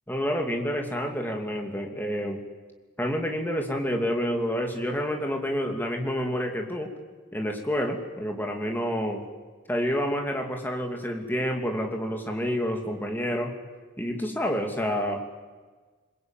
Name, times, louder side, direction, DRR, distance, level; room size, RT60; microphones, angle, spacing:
voice 1, 0.1-2.4 3.0-6.9 7.3-9.2 9.7-13.5 14.0-15.2, equal, 10° left, 3 dB, 2.6 m, -28 dB
26.0 x 21.5 x 9.2 m, 1.4 s
head